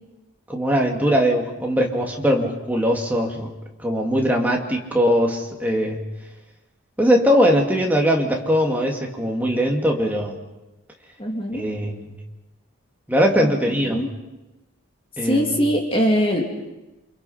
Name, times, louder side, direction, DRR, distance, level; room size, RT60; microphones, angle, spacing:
voice 1, 0.5-3.5 3.8-6.0 7.0-10.4 11.5-12.1 13.1-14.0 15.2-15.6, equal, 10° right, 0 dB, 2.5 m, -20 dB
voice 2, 11.2-11.7 13.4-13.5 13.9-14.1 15.2-16.5, equal, 25° left, 1 dB, 3.0 m, -22 dB
28.5 x 26.5 x 5.9 m, 1.0 s
head